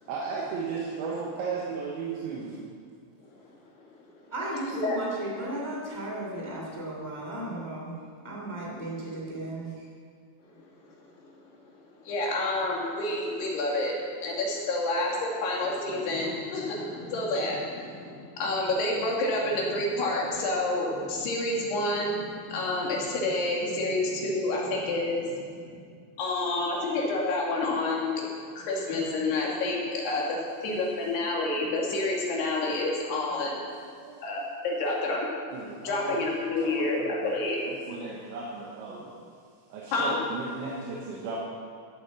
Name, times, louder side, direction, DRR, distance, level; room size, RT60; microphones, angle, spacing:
voice 1, 0.1-2.6 34.0-34.4 35.5-36.2 36.6-37.3 37.7-39.2 39.7-41.4, right 4 dB, 80° right, -4 dB, 3.7 m, -35 dB
voice 2, 4.3-8.0 8.2-9.8, right 1 dB, 5° left, -3 dB, 1.4 m, -35 dB
voice 3, 12.0-25.8 26.2-28.2 28.6-30.4 30.6-33.6 34.2-35.3 35.8-37.6 39.9-40.2, left 2 dB, 65° left, -2 dB, 4.2 m, -29 dB
15.0 x 8.5 x 7.2 m, 2.1 s
omnidirectional pair, 5.3 m